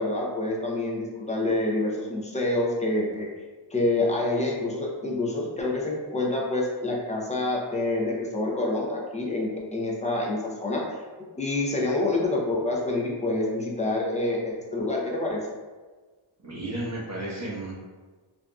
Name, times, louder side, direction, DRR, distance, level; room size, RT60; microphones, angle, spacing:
voice 1, 0.0-3.3 3.7-11.0 11.4-15.4, left 2 dB, 15° left, -2 dB, 0.5 m, -27 dB
voice 2, 16.4-17.7, right 1 dB, 35° right, -6 dB, 1.0 m, -33 dB
3.5 x 2.6 x 2.3 m, 1.3 s
wide cardioid pair, 135°, 47 cm